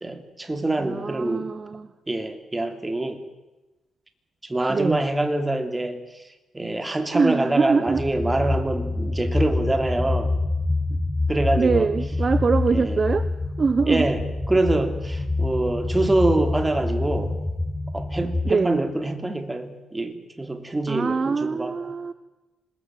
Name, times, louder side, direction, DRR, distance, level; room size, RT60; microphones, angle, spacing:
voice 1, 0.0-1.5 2.1-3.2 4.4-6.2 6.5-10.3 10.9-11.0 11.3-11.9 12.7-13.0 13.9-17.4 17.9-21.7, right 2 dB, 15° right, 7 dB, 3.1 m, -25 dB
voice 2, 0.8-1.9 4.7-5.1 7.1-8.2 11.6-13.3 13.6-14.1 18.4-18.8 20.9-22.1, right 4 dB, 35° right, 13 dB, 1.1 m, -23 dB
sound 1, 7.9-18.5, left 2 dB, 10° left, 1.4 m, -26 dB
26.0 x 20.5 x 9.4 m, 1.1 s
cardioid pair, 110°, 0 cm